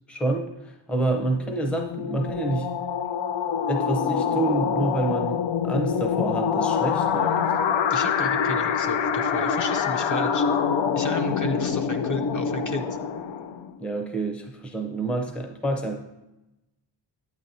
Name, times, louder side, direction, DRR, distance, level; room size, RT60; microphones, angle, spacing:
voice 1, 0.1-2.7 3.7-7.5 13.8-16.0, right 2 dB, 5° left, 3 dB, 0.5 m, -28 dB
sound 1, 1.1-13.8, left 7 dB, 90° left, 0.6 m, -25 dB
voice 2, 7.9-10.5 10.9-13.0, left 2 dB, 45° left, 5 dB, 0.7 m, -32 dB
9.4 x 8.8 x 2.7 m, 0.98 s
wide cardioid pair, 165°, 44 cm